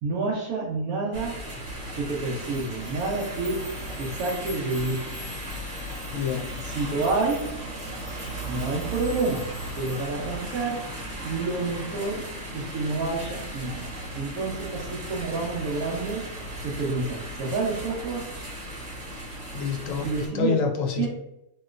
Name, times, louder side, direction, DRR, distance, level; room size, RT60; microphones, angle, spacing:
voice 1, 0.0-1.4 1.9-3.7 4.0-5.2 6.8-7.5 8.5-10.8 11.2-12.3 12.5-16.2 16.6-18.3 20.0-20.6 21.0-21.1, right 3 dB, 85° right, -5 dB, 1.2 m, -29 dB
sound 1, 1.1-20.3, right 1 dB, 65° right, 1.4 m, -36 dB
sound 2, 2.4-10.1, left 1 dB, 15° right, 1.4 m, -47 dB
voice 2, 6.1-6.5 19.5-21.1, left 6 dB, 70° left, 2 dB, 1.0 m, -27 dB
3.0 x 2.9 x 2.4 m, 0.86 s
omnidirectional pair, 1.5 m